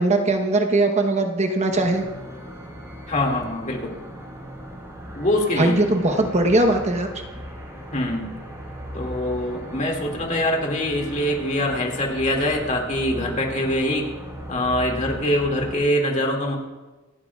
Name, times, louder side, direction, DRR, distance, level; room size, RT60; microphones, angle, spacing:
voice 1, 0.0-2.0 5.6-7.1, right 2 dB, 35° right, 4 dB, 1.0 m, -20 dB
sound 1, 1.7-15.8, equal, 15° right, 4.9 m, -37 dB
voice 2, 3.1-3.9 5.2-5.8 7.9-8.3 8.9-14.1 14.5-16.6, left 1 dB, 35° left, 0 dB, 2.2 m, -24 dB
27.0 x 11.5 x 2.4 m, 1.2 s
head